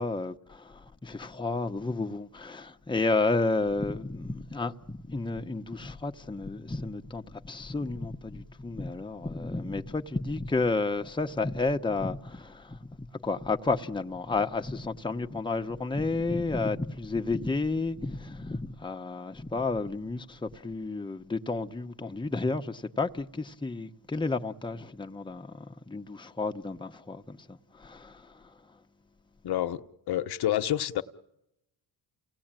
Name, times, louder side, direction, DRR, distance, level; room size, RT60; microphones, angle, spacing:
voice 1, 0.0-28.5, left 3 dB, 10° left, 1.1 m, -31 dB
voice 2, 29.4-29.8 30.1-31.0, left 12 dB, 60° left, 1.2 m, -28 dB
29.0 x 18.5 x 9.0 m
cardioid pair, 85°, 43 cm